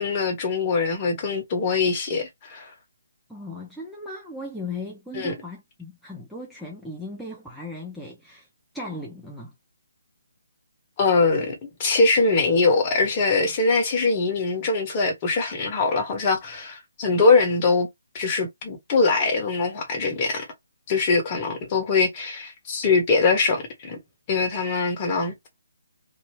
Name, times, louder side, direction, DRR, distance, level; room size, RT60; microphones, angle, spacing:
voice 1, 0.0-2.7 5.1-5.3 11.0-17.9 18.1-20.5 20.9-24.0 24.3-25.3, left 4 dB, 30° left, 1.2 m, -22 dB
voice 2, 3.3-8.5 8.7-9.5, left 2 dB, ahead, 0.7 m, -37 dB
2.7 x 2.4 x 3.2 m
figure-of-eight pair, 145°, 0 cm